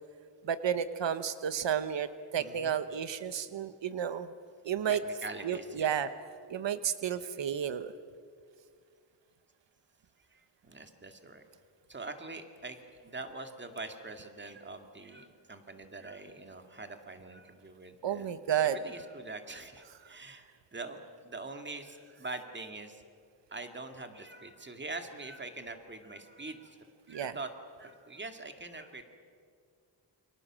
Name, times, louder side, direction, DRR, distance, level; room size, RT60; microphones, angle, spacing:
voice 1, 0.4-2.1 2.3-4.3 4.6-5.0 5.4-6.1 6.5-7.9 18.0-18.8 27.1-27.3, right 9 dB, 90° right, 12 dB, 1.1 m, -31 dB
voice 2, 2.4-2.8 4.9-5.9 10.3-11.4 11.9-18.3 18.6-23.0 23.5-26.8 27.1-27.5 27.8-29.0, right 3 dB, 25° right, 6 dB, 2.2 m, -44 dB
28.5 x 25.5 x 7.5 m, 2.1 s
wide cardioid pair, 145°, 42 cm